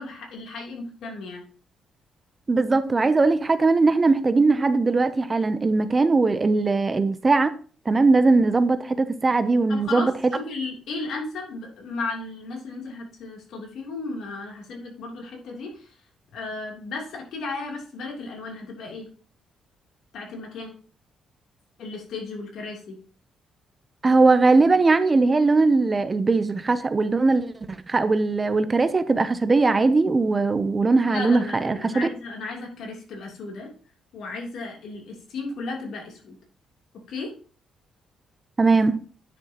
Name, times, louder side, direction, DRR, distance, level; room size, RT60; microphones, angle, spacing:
voice 1, 0.0-1.4 9.7-10.1 10.4-16.0 16.3-19.1 20.1-20.7 21.8-23.0 31.1-33.7 34.1-36.4 37.1-37.3, left 3 dB, 70° left, 2.9 m, -35 dB
voice 2, 2.5-7.5 7.9-10.1 24.0-27.5 27.9-32.1 38.6-39.0, right 3 dB, 20° right, 0.5 m, -20 dB
9.9 x 6.7 x 2.9 m
cardioid pair, 150°, 0 cm